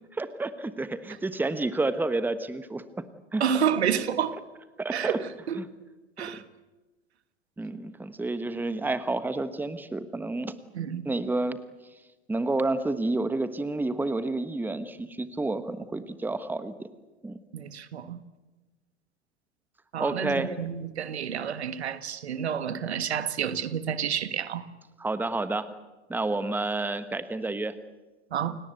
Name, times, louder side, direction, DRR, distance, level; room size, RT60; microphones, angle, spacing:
voice 1, 0.2-2.8 3.3-3.4 4.8-5.2 5.6-5.7 7.6-10.5 11.0-11.6 12.3-16.9 17.2-17.4 20.0-20.5 25.0-25.7 26.1-27.7, right 2 dB, 5° right, 12 dB, 1.3 m, -29 dB
voice 2, 3.4-4.4 4.9-5.6 6.2-6.4 10.7-11.1 17.5-18.2 19.9-24.7 28.3-28.6, right 8 dB, 70° right, 12 dB, 1.6 m, -29 dB
29.0 x 18.5 x 8.2 m, 1.2 s
figure-of-eight pair, 90°, 34 cm